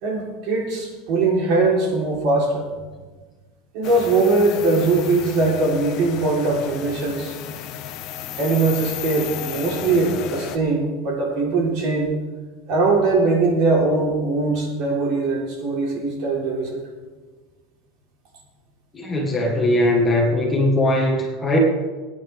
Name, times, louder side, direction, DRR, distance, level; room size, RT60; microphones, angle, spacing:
voice 1, 0.0-2.6 3.7-7.3 8.4-12.1 12.7-16.8, right 3 dB, 50° right, -2 dB, 3.9 m, -21 dB
sound 1, 3.8-10.6, left 10 dB, 45° left, 0.8 m, -34 dB
voice 2, 18.9-21.6, left 1 dB, 15° left, -1 dB, 1.8 m, -20 dB
23.5 x 9.6 x 3.6 m, 1.3 s
supercardioid pair, 165°, 0 cm